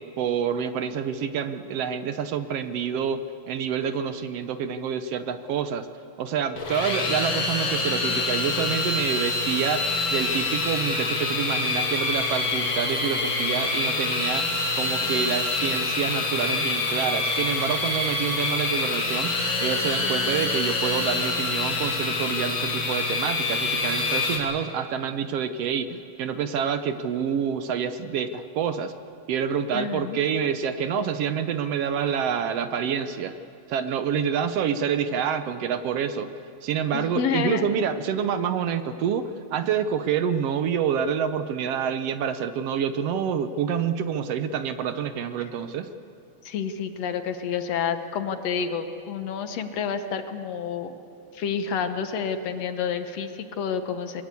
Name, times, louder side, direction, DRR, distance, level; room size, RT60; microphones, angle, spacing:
voice 1, 0.2-3.2 3.5-5.9 6.2-9.8 10.1-14.4 14.7-19.3 19.6-28.9 29.3-33.3 33.7-36.3 36.6-45.9, right 7 dB, 70° right, 10 dB, 1.6 m, -27 dB
sound 1, 6.6-24.4, left 3 dB, 40° left, 3.2 m, -26 dB
voice 2, 29.7-30.2 36.9-37.7 46.4-50.9 51.3-54.2, left 6 dB, 65° left, 8 dB, 2.1 m, -29 dB
22.0 x 21.5 x 8.3 m, 2.6 s
omnidirectional pair, 3.4 m